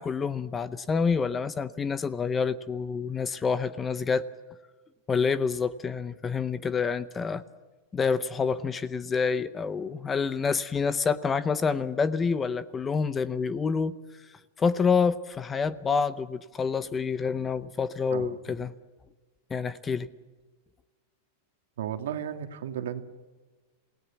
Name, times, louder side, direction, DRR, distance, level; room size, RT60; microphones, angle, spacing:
voice 1, 0.0-4.2 5.1-7.4 7.9-13.9 14.6-18.7 19.5-20.1, left 5 dB, 15° left, 15 dB, 0.7 m, -27 dB
voice 2, 21.8-23.0, right 9 dB, 85° right, 7 dB, 2.1 m, -34 dB
27.5 x 18.0 x 7.2 m, 1.3 s
supercardioid pair, 150°, 0 cm